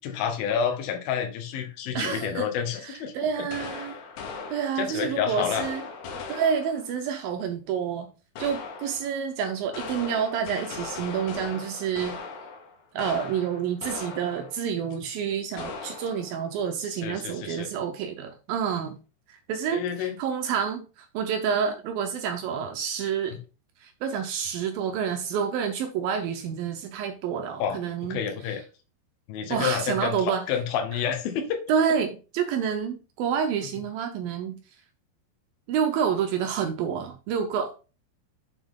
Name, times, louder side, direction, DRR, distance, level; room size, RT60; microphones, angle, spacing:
voice 1, 0.0-3.1 3.4-3.5 3.8-3.9 4.8-5.7 17.0-17.7 19.7-20.2 23.3-23.4 27.6-27.8 28.1-28.6 29.3-31.6, left 8 dB, 70° left, 2.7 m, -29 dB
voice 2, 1.9-2.5 2.8-3.9 4.5-5.8 6.3-8.1 8.4-12.2 12.9-19.0 19.5-23.4 23.8-28.3 29.5-30.5 31.7-34.6 35.7-37.7, right 7 dB, 75° right, 2.4 m, -28 dB
sound 1, 3.5-5.1 5.5-7.0 8.4-9.2 9.6-14.7 14.9-15.0 15.6-16.4, left 4 dB, 85° left, 3.5 m, -39 dB
7.2 x 5.7 x 3.7 m
omnidirectional pair, 4.7 m